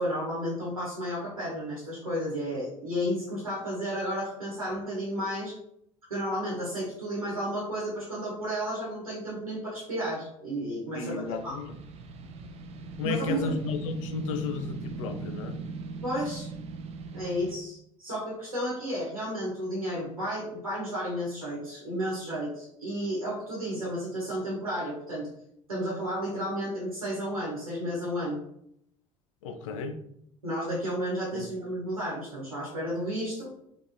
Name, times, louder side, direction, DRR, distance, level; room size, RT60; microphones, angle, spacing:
voice 1, 0.0-5.5 6.1-11.5 13.0-13.6 16.0-16.5 17.1-25.3 25.7-28.4 30.4-33.5, equal, 85° right, -6 dB, 1.0 m, -32 dB
voice 2, 10.9-11.8 13.0-15.6 29.4-30.0 31.3-31.5, left 4 dB, 65° left, 7 dB, 0.5 m, -33 dB
sound 1, 11.2-17.6, right 4 dB, 35° right, 0.5 m, -40 dB
3.5 x 3.0 x 2.7 m, 0.73 s
figure-of-eight pair, 60°, 18 cm